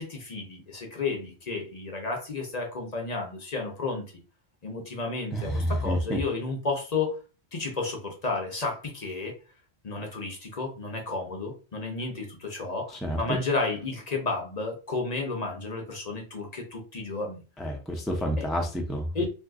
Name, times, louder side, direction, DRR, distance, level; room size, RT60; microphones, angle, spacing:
voice 1, 0.0-4.0 4.6-7.2 7.5-9.4 9.8-17.4 18.4-18.5 19.1-19.2, left 3 dB, 40° left, 1 dB, 0.7 m, -32 dB
voice 2, 5.3-6.2 12.9-13.4 17.6-19.2, equal, ahead, 1 dB, 0.4 m, -29 dB
2.6 x 2.4 x 3.5 m, 0.33 s
omnidirectional pair, 1.2 m